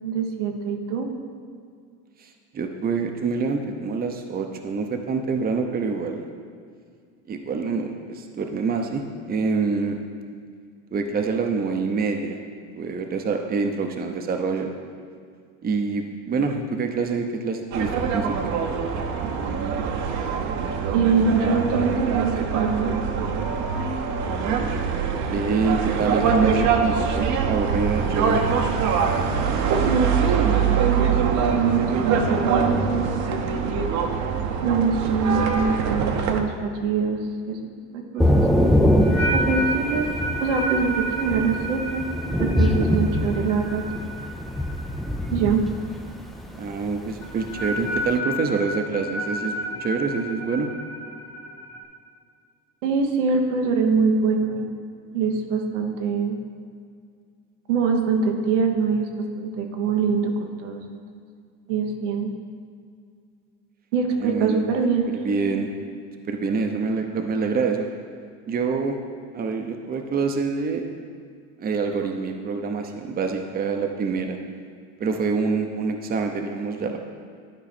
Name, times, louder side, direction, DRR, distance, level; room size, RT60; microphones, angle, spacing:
voice 1, 0.0-1.1 20.9-22.9 29.8-33.1 34.6-37.2 37.5-37.6 37.9-38.4 39.3-40.1 40.4-42.0 42.4-43.8 45.3-45.6 52.8-54.7 55.1-56.4 57.7-61.0 61.7-62.3 63.9-65.2, right 5 dB, 90° right, 2 dB, 1.1 m, -24 dB
voice 2, 2.5-6.2 7.3-10.0 10.9-12.4 12.8-14.7 15.6-18.5 25.3-28.5 46.6-49.5 49.8-50.7 64.2-64.6 65.2-65.7 66.3-67.9 68.5-69.0 69.3-70.8 71.6-74.4 75.0-77.0, right 4 dB, 25° right, 4 dB, 0.8 m, -26 dB
sound 1, 17.7-36.4, right 6 dB, 50° right, 0.9 m, -23 dB
sound 2, 38.2-45.3 45.6-46.0 47.2-51.8, right 1 dB, 70° left, 2.0 m, -31 dB
Thunder / Rain, 38.2-48.2, equal, ahead, 0.5 m, -24 dB
12.0 x 4.7 x 4.2 m, 2.2 s
supercardioid pair, 105°, 35 cm